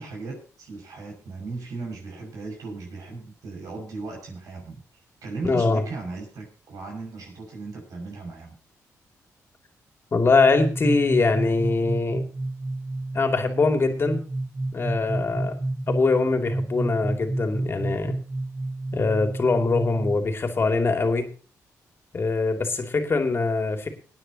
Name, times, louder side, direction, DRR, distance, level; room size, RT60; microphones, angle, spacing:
voice 1, 0.0-4.8 5.2-8.5, right 3 dB, 75° right, 0 dB, 6.4 m, -36 dB
voice 2, 5.4-5.8 10.1-12.2 13.1-14.2 14.7-15.6 15.9-18.2 18.9-21.3 22.1-23.9, left 3 dB, 40° left, 5 dB, 2.7 m, -23 dB
sound 1, 10.3-20.2, right 2 dB, 20° right, 0.9 m, -30 dB
25.5 x 9.7 x 3.0 m, 0.37 s
cardioid pair, 90°, 6 cm